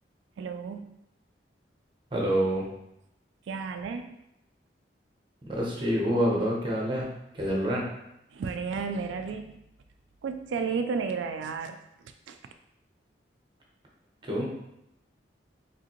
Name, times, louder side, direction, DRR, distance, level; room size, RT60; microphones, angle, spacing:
voice 1, 0.4-0.9 3.5-4.2 7.4-7.5 8.3-9.6 10.2-11.8 12.3-12.4, right 5 dB, 90° right, 7 dB, 0.3 m, -32 dB
voice 2, 2.1-2.6 5.5-7.1 7.3-7.8 14.2-14.4, equal, 25° right, -2 dB, 1.1 m, -26 dB
4.8 x 3.5 x 3.0 m, 0.82 s
head